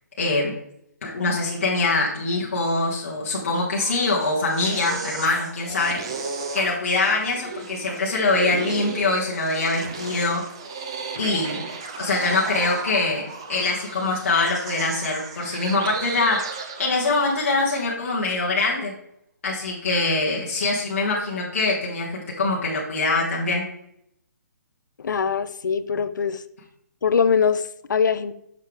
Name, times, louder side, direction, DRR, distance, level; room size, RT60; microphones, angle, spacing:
voice 1, 0.2-0.5 1.0-6.0 6.5-10.4 11.2-11.6 12.0-16.4 16.8-18.9 19.4-23.6, left 3 dB, 45° left, -5 dB, 1.4 m, -23 dB
sound 1, 3.6-17.8, right 4 dB, 15° right, 0.4 m, -35 dB
voice 2, 25.0-26.4 27.0-28.3, left 6 dB, 85° left, 14 dB, 0.5 m, -22 dB
6.5 x 5.6 x 3.4 m, 0.74 s
hypercardioid pair, 180°, 10 cm